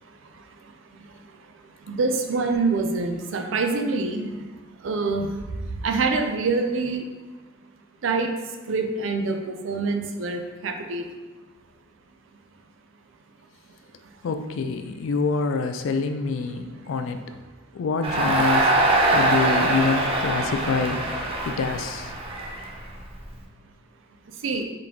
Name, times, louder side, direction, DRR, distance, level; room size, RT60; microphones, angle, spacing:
voice 1, 1.9-4.3 4.8-5.3 5.8-7.0 8.0-8.3 8.7-11.0 24.4-24.7, right 3 dB, 75° right, 5 dB, 0.4 m, -25 dB
voice 2, 14.2-17.2 17.7-18.8 19.1-21.1 21.5-22.1, left 4 dB, 80° left, 8 dB, 0.3 m, -26 dB
Crowd, 18.0-23.2, right 1 dB, 30° right, 0.5 m, -23 dB
3.8 x 3.7 x 2.9 m, 1.3 s
head